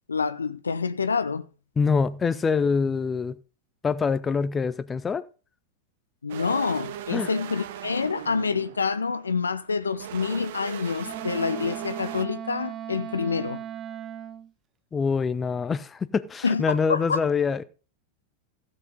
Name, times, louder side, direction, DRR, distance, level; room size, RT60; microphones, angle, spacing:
voice 1, 0.1-1.5 6.2-13.6 16.4-17.2, left 5 dB, 75° left, 0.7 m, -27 dB
voice 2, 1.8-3.4 3.8-5.2 7.1-7.3 14.9-17.6, left 5 dB, 20° left, 0.7 m, -25 dB
sound 1, 6.3-12.2, right 11 dB, 55° right, 0.9 m, -39 dB
Wind instrument woodwind instrument, 11.0-14.5, right 9 dB, 25° right, 0.5 m, -37 dB
16.0 x 7.6 x 3.9 m
figure-of-eight pair, 90°, 0 cm